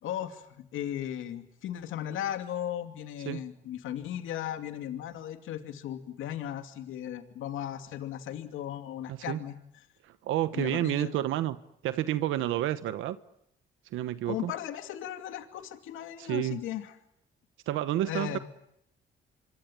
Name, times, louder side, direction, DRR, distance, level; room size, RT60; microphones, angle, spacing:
voice 1, 0.0-9.6 10.5-11.2 14.3-17.0 18.0-18.4, left 11 dB, 85° left, 2.7 m, -36 dB
voice 2, 9.1-9.4 10.0-11.6 11.8-13.2 13.9-14.5 16.2-16.6 17.7-18.4, right 13 dB, 90° right, 1.2 m, -30 dB
27.0 x 24.5 x 9.0 m
cardioid pair, 90°, 20 cm